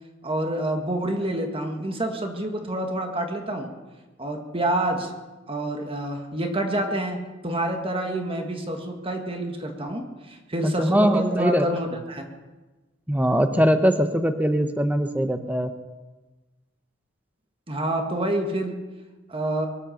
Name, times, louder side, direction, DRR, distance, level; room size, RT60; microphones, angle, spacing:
voice 1, 0.2-3.7 4.2-5.1 5.5-12.3 17.7-18.8 19.3-19.7, right 1 dB, 30° right, 4 dB, 1.6 m, -28 dB
voice 2, 10.6-11.7 13.1-15.7, equal, 10° right, 8 dB, 0.9 m, -21 dB
23.0 x 8.6 x 6.5 m, 1.2 s
head